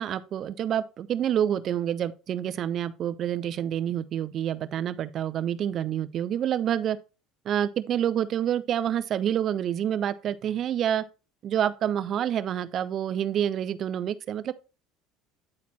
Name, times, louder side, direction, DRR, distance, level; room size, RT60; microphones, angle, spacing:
voice 1, 0.0-7.0 7.4-11.0 11.4-14.5, right 10 dB, 50° right, 0.7 m, -28 dB
9.8 x 4.2 x 4.2 m
supercardioid pair, 90°, 0 cm